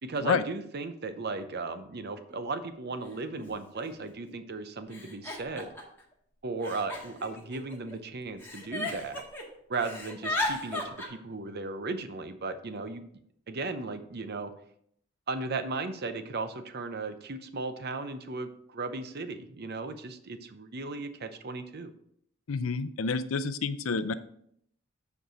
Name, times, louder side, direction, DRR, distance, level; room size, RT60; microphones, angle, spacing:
voice 1, 0.0-5.7 6.4-9.2 9.7-13.0 13.5-14.5 15.3-21.9, right 3 dB, 55° right, 10 dB, 0.7 m, -36 dB
Giggle, 2.3-2.4 3.4-3.5 3.7-4.3 4.9-6.0 6.6-7.9 8.4-9.4 9.7-11.1, left 2 dB, 10° left, 1.9 m, -35 dB
voice 2, 22.5-24.1, left 5 dB, 75° left, 13 dB, 0.5 m, -29 dB
8.0 x 4.7 x 4.9 m, 0.68 s
head